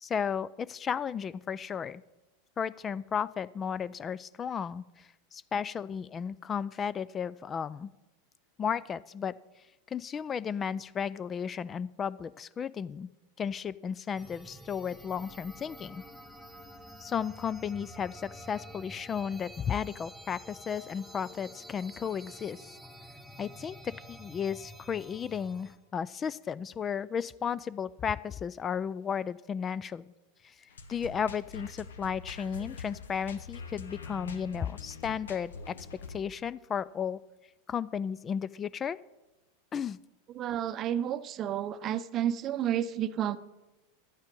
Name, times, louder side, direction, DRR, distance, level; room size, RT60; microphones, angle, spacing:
voice 1, 0.0-2.0 2.6-7.9 8.6-9.3 9.9-13.1 13.4-16.0 17.0-22.6 23.4-30.1 30.9-35.7 36.1-37.2 37.7-39.0 39.7-40.0, left 7 dB, 25° left, 19 dB, 0.3 m, -34 dB
sound 1, 14.2-25.8, equal, ahead, 1.6 m, -49 dB
sound 2, 30.7-36.2, left 4 dB, 75° left, 1.0 m, -44 dB
voice 2, 40.3-43.4, right 10 dB, 40° right, 14 dB, 0.6 m, -31 dB
11.0 x 8.9 x 5.3 m, 1.0 s
figure-of-eight pair, 90°, 0 cm